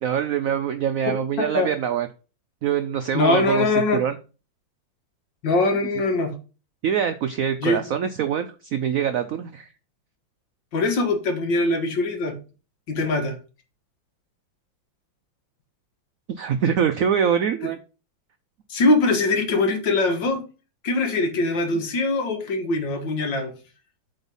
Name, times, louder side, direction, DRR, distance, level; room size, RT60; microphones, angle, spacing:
voice 1, 0.0-2.1 2.6-4.2 6.8-9.7 16.3-17.8, right 8 dB, 90° right, 9 dB, 0.7 m, -24 dB
voice 2, 1.1-1.7 3.1-4.0 5.4-6.3 7.6-7.9 10.7-12.4 12.9-13.3 18.7-20.4 20.8-23.5, left 2 dB, 70° left, 4 dB, 2.1 m, -22 dB
8.0 x 4.0 x 5.4 m, 0.35 s
omnidirectional pair, 2.1 m